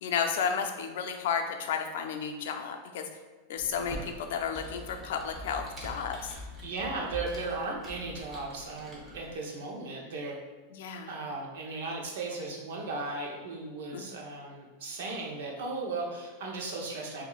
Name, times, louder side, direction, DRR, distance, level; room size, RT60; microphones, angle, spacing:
voice 1, 0.0-3.1 3.5-6.3 10.7-11.1 13.9-14.0, left 6 dB, 75° left, 5 dB, 0.4 m, -32 dB
Computer keyboard, 3.6-9.4, left 1 dB, 10° right, 0.9 m, -44 dB
voice 2, 6.6-10.4 11.1-17.3, right 3 dB, 80° right, 0 dB, 0.9 m, -36 dB
5.8 x 2.6 x 2.4 m, 1.3 s
supercardioid pair, 155°, 0 cm